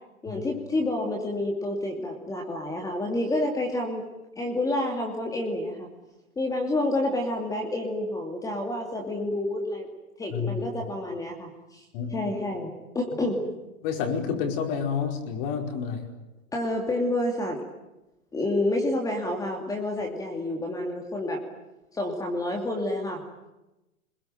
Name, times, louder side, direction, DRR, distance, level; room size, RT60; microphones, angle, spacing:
voice 1, 0.2-4.0 4.4-5.9 6.4-9.9 10.2-11.8 12.1-13.5 16.5-17.6 18.3-21.4 21.9-23.2, left 1 dB, 10° left, 2 dB, 2.7 m, -29 dB
voice 2, 10.3-10.7 11.9-12.3 13.8-16.1, left 6 dB, 40° left, 4 dB, 5.0 m, -29 dB
27.0 x 22.0 x 9.2 m, 0.97 s
hypercardioid pair, 155°, 43 cm